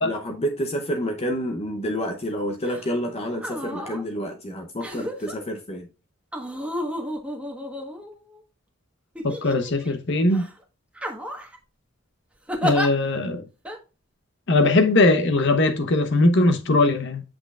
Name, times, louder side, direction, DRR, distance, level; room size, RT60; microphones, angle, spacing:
voice 1, 0.0-5.9, equal, 30° left, 0.8 m, -29 dB
sound 1, 2.6-2.9 3.3-4.0 4.8-5.3 6.3-8.4 9.2-9.9 10.3-10.5 11.0-11.6 12.5-12.9 13.7-13.8, equal, 5° right, 1.3 m, -31 dB
voice 2, 9.2-10.5 12.6-13.5 14.5-17.2, left 2 dB, 60° left, 0.9 m, -20 dB
7.6 x 6.3 x 2.4 m
head